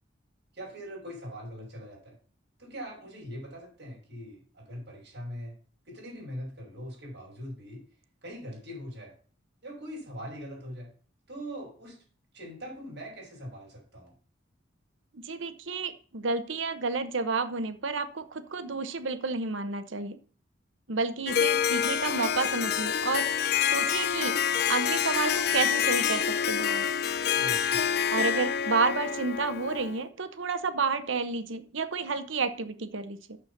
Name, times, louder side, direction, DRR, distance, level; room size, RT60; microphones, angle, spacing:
voice 1, 0.5-2.2 2.6-5.6 5.9-7.8 8.2-9.1 9.6-10.9 11.3-12.0 12.3-14.1 27.3-27.9, equal, 55° right, -3 dB, 6.4 m, -41 dB
voice 2, 15.1-20.2 20.9-23.3 23.6-24.4 24.7-26.9 28.1-33.2, right 4 dB, 75° right, 11 dB, 0.9 m, -30 dB
Harp, 21.3-30.0, left 8 dB, 50° left, 0.5 m, -27 dB
8.8 x 6.7 x 7.1 m, 0.43 s
head